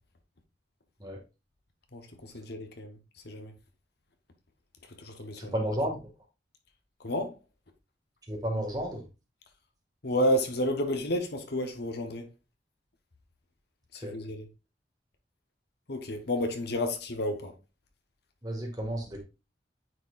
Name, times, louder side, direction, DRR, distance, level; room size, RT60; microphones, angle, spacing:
voice 1, 1.9-3.0 3.2-3.5 5.0-5.6 7.0-7.3 10.0-12.3 13.9-14.5 15.9-17.5, equal, 65° left, 1.0 m, -31 dB
voice 2, 5.4-6.1 8.3-9.0 14.0-14.1 18.4-19.2, right 1 dB, 20° right, 1.9 m, -32 dB
9.1 x 4.4 x 2.5 m
head